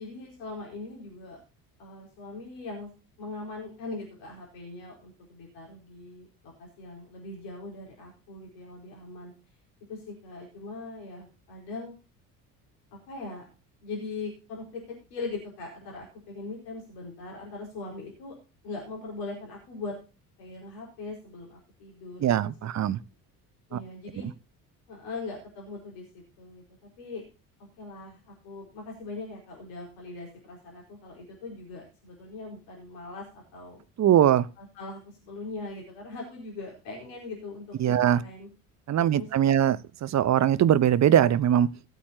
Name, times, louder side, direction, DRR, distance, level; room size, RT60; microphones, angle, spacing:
voice 1, 0.0-1.4 1.8-2.9 3.2-9.3 9.9-11.9 13.1-13.4 13.8-14.8 15.1-18.3 18.6-19.9 20.4-22.4 22.8-22.9 23.7-24.3 24.9-26.6 27.0-27.2 27.8-33.8 34.6-38.5 39.0-39.6, left 3 dB, 65° left, -2 dB, 4.8 m, -40 dB
voice 2, 22.2-23.0 23.7-23.8 24.2-24.3 34.0-34.5 37.8-38.2 38.9-41.7, right 10 dB, 35° right, 18 dB, 0.9 m, -21 dB
18.0 x 8.6 x 2.8 m, 0.32 s
hypercardioid pair, 60°, 46 cm